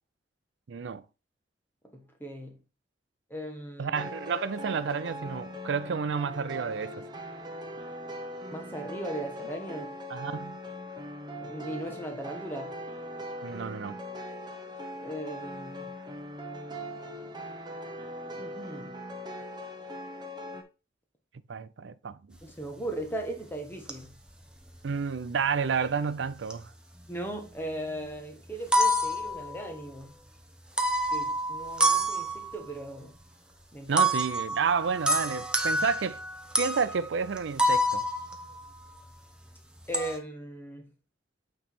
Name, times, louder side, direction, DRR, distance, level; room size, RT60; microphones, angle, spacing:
voice 1, 0.7-1.0 3.8-7.0 10.1-10.6 13.4-14.0 21.5-22.4 24.8-26.7 33.9-36.2 36.6-38.1, right 6 dB, 85° right, 0.5 m, -30 dB
voice 2, 1.8-2.6 3.3-4.0 8.5-9.9 11.4-12.7 15.0-15.9 18.3-19.0 22.4-24.1 27.1-30.1 31.1-33.2 33.7-34.1 39.9-40.9, right 1 dB, 10° left, 1.4 m, -38 dB
sound 1, 3.9-20.6, equal, 25° right, 1.0 m, -40 dB
sound 2, 22.4-22.5 22.9-23.3 23.9-24.4 24.7-25.3 26.2-26.7 27.0-27.8 28.2-28.3 28.5-30.0 30.8-32.7 34.0-39.2 39.5-40.2, right 1 dB, 5° right, 0.7 m, -28 dB
8.9 x 3.2 x 4.2 m
head